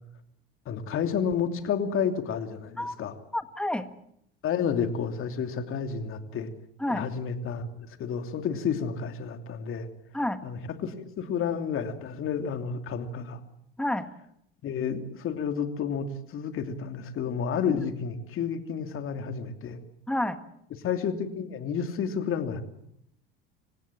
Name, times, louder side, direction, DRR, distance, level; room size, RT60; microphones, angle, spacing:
voice 1, 0.7-3.1 4.4-6.5 6.9-9.9 10.4-13.4 14.6-19.8 20.7-22.6, left 7 dB, 45° left, 6 dB, 2.9 m, -31 dB
voice 2, 3.3-3.9 6.8-7.0 10.1-10.4 13.8-14.1 20.1-20.4, left 1 dB, 5° left, 10 dB, 1.7 m, -29 dB
27.5 x 17.0 x 7.4 m, 0.73 s
hypercardioid pair, 75°, 29 cm